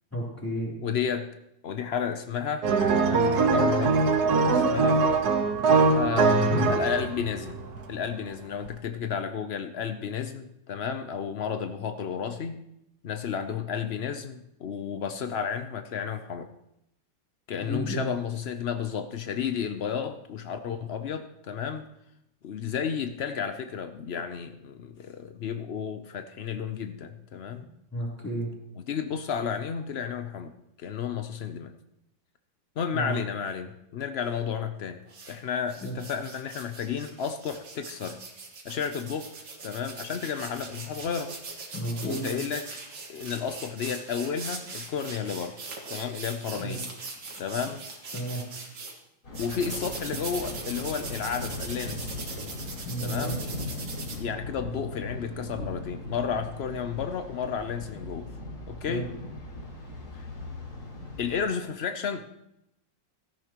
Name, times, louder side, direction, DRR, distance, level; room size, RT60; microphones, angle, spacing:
voice 1, 0.1-0.8 17.7-18.0 27.9-28.5 32.9-33.2 35.8-35.9 41.7-42.2 46.6-46.7 48.1-48.4 52.8-53.4 58.9-59.1, right 1 dB, 5° left, -4 dB, 3.4 m, -32 dB
voice 2, 0.8-1.3 1.6-2.7 3.1-5.0 5.9-7.6 7.9-12.6 13.0-16.5 17.5-21.9 22.4-27.7 28.8-30.5 30.8-31.7 32.8-35.0 35.3-38.2 38.6-39.3 39.6-41.3 42.0-42.8 43.1-45.6 45.9-46.8 47.4-47.8 49.4-52.2 53.0-53.4 54.0-58.3 58.7-59.1 60.1-60.3 61.2-62.3, left 7 dB, 80° left, 8 dB, 0.5 m, -32 dB
sound 1, 2.6-8.0 8.7-8.8, right 4 dB, 60° right, 1.5 m, -22 dB
sound 2, 35.1-35.3 35.7-48.9 49.3-54.2, right 3 dB, 80° right, 2.6 m, -40 dB
Thunder, 49.2-61.4, left 2 dB, 55° left, 4.2 m, -39 dB
17.0 x 13.5 x 3.0 m, 0.81 s
omnidirectional pair, 2.0 m